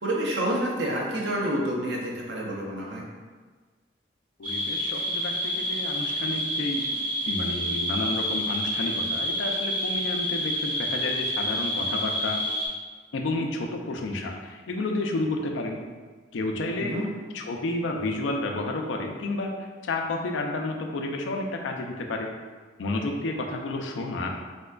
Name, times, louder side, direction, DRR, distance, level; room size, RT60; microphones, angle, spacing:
voice 1, 0.0-3.0 16.8-17.1, right 1 dB, 70° right, -3 dB, 0.7 m, -28 dB
voice 2, 4.4-6.9 7.3-12.4 13.1-15.8 16.3-16.9 17.3-19.5 19.8-22.3 22.8-24.3, left 2 dB, 90° left, 2 dB, 0.4 m, -30 dB
sound 1, 4.4-12.7, equal, 50° right, 1.0 m, -28 dB
3.3 x 2.8 x 2.3 m, 1.4 s
head